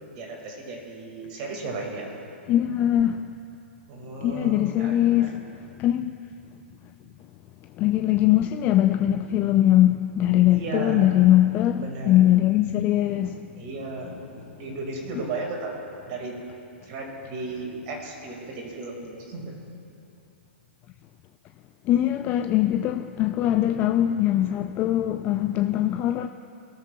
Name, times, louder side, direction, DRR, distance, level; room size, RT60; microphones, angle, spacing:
voice 1, 0.0-2.1 3.9-5.3 10.5-11.2 11.8-12.2 13.5-14.2 14.6-15.7 16.1-16.3 16.9-19.5, right 3 dB, 45° right, 2.0 m, -34 dB
voice 2, 2.5-3.3 4.2-6.1 7.8-13.5 21.8-26.3, left 13 dB, 30° left, 0.3 m, -21 dB
18.5 x 7.3 x 2.3 m
hypercardioid pair, 120°, 7 cm